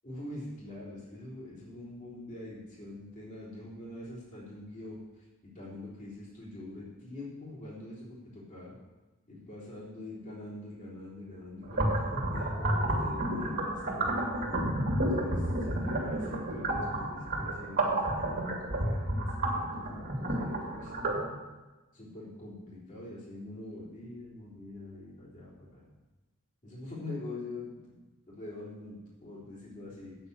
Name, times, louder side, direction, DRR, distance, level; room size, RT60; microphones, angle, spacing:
voice 1, 0.0-8.8 9.3-14.3 15.0-21.3 21.9-25.9 26.6-28.0 28.3-30.2, left 2 dB, 35° left, -7 dB, 3.5 m, -44 dB
sound 1, 11.6-21.2, right 1 dB, 40° right, 2.4 m, -31 dB
8.8 x 6.6 x 8.1 m, 1.2 s
head